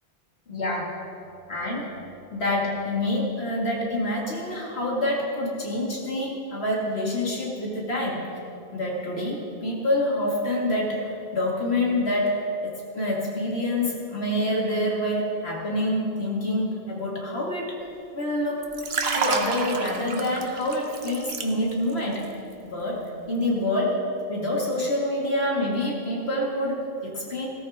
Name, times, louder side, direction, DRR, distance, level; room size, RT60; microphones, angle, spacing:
voice 1, 0.5-0.9 1.5-1.9 2.3-8.3 8.7-17.8 18.1-22.3 22.6-24.0 24.3-27.5, left 1 dB, 80° left, -3 dB, 2.6 m, -27 dB
Liquid, 18.6-21.9 22.2-22.5, right 4 dB, 75° right, 1.2 m, -29 dB
17.0 x 13.5 x 3.7 m, 2.8 s
omnidirectional pair, 1.1 m